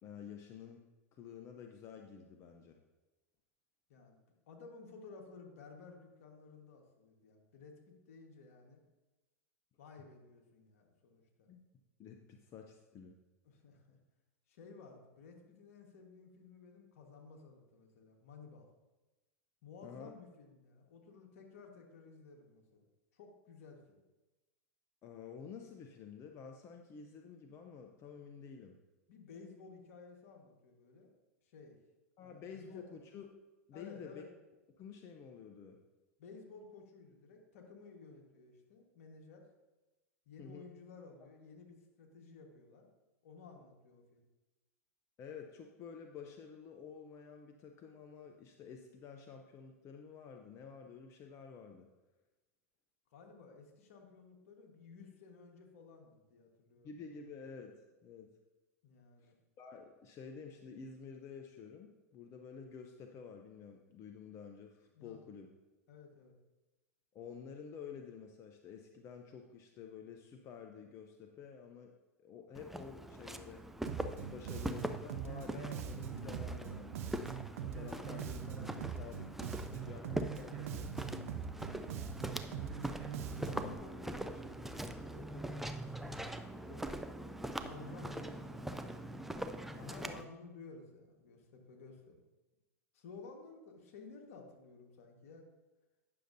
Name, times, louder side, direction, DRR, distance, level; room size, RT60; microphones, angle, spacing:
voice 1, 0.0-0.8 1.1-2.8 11.5-11.6 12.0-13.1 19.8-20.1 25.0-28.8 32.2-33.3 33.7-34.2 34.8-35.8 40.4-40.7 45.2-51.9 56.8-57.7 58.0-58.3 59.2-65.5 67.1-71.9 72.2-73.6 74.0-80.9, left 6 dB, 35° left, 4 dB, 0.6 m, -50 dB
voice 2, 4.5-8.8 9.8-11.5 13.4-14.0 14.5-18.7 19.6-22.8 23.1-24.0 29.1-31.1 31.4-31.8 32.2-32.9 33.7-34.3 36.2-39.4 40.2-42.9 43.2-44.2 53.1-56.9 58.8-59.3 64.9-65.2 65.9-66.3 82.8-85.9 86.6-86.8 87.6-88.7 89.7-92.2 92.9-95.5, left 4 dB, 70° left, 2 dB, 1.4 m, -55 dB
Walk footsteps, 72.5-90.2, right 1 dB, 5° right, 0.4 m, -43 dB
Bass guitar, 73.9-83.7, right 7 dB, 70° right, 0.6 m, -42 dB
9.4 x 6.5 x 2.6 m, 1.1 s
hypercardioid pair, 95°, 8 cm